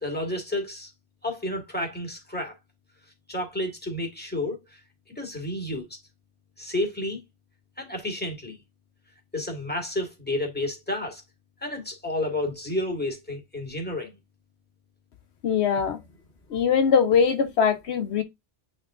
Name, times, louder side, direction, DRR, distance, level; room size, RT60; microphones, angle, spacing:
voice 1, 0.0-0.9 1.2-2.5 3.3-4.6 5.2-5.9 6.6-7.2 7.8-8.6 9.3-11.2 11.6-14.2, left 1 dB, 10° left, 2.0 m, -30 dB
voice 2, 15.4-16.0 16.5-18.2, left 6 dB, 75° left, 1.0 m, -21 dB
8.4 x 3.2 x 3.6 m
omnidirectional pair, 1.1 m